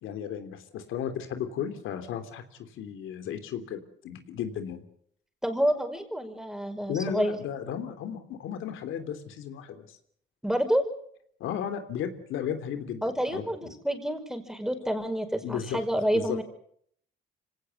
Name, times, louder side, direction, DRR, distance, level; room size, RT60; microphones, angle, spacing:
voice 1, 0.0-2.4 2.7-4.8 6.9-9.9 11.4-13.7 15.4-15.8 16.1-16.4, left 8 dB, 85° left, 8 dB, 3.2 m, -34 dB
voice 2, 5.4-7.4 10.4-10.8 13.0-16.4, equal, 5° right, 8 dB, 5.2 m, -28 dB
25.5 x 18.0 x 8.0 m, 0.65 s
cardioid pair, 90°, 20 cm